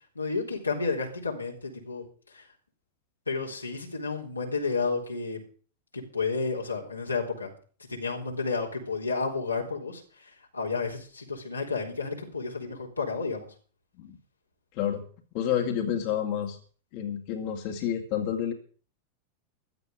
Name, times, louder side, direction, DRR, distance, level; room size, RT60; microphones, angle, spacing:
voice 1, 0.2-2.0 2.3-2.5 3.3-5.4 5.9-7.5 7.9-13.5, left 4 dB, 80° left, -1 dB, 3.8 m, -31 dB
voice 2, 15.3-16.6 16.9-18.5, left 9 dB, 45° left, 2 dB, 2.4 m, -29 dB
16.0 x 12.0 x 5.1 m, 0.41 s
figure-of-eight pair, 90°, 0 cm